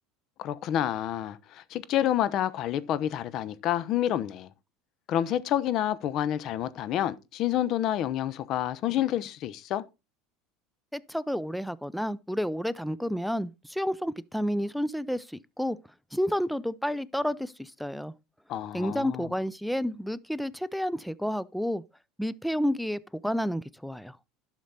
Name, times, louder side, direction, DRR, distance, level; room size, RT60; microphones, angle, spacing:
voice 1, 0.4-4.5 5.1-9.8 18.5-19.3, left 11 dB, 55° left, 0.9 m, -28 dB
voice 2, 10.9-15.8 16.1-18.1 18.7-21.8 22.2-24.2, equal, ahead, 0.6 m, -30 dB
11.5 x 6.5 x 4.2 m
supercardioid pair, 95°, 0 cm